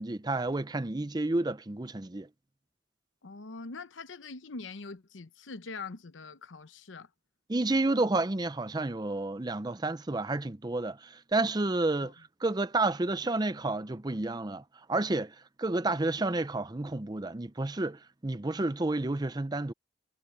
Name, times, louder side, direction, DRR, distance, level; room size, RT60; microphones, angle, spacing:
voice 1, 0.0-2.3 7.5-12.2 12.4-14.6 14.9-19.7, right 2 dB, 20° right, 0.6 m, -30 dB
voice 2, 3.2-7.1 12.0-12.1, left 3 dB, 90° left, 0.9 m, -43 dB
head